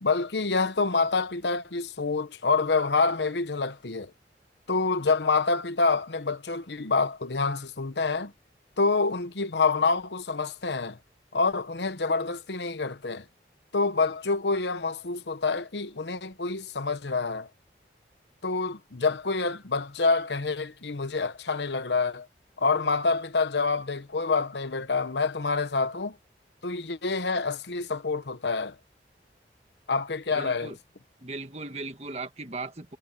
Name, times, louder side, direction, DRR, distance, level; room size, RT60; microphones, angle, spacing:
voice 1, 0.0-4.1 4.7-8.3 8.8-11.0 11.3-13.2 13.7-17.5 18.4-22.3 22.6-26.2 26.6-28.7 29.9-30.8, left 4 dB, 80° left, 1.1 m, -27 dB
voice 2, 30.3-30.8 31.2-33.0, right 3 dB, 35° right, 1.7 m, -37 dB
head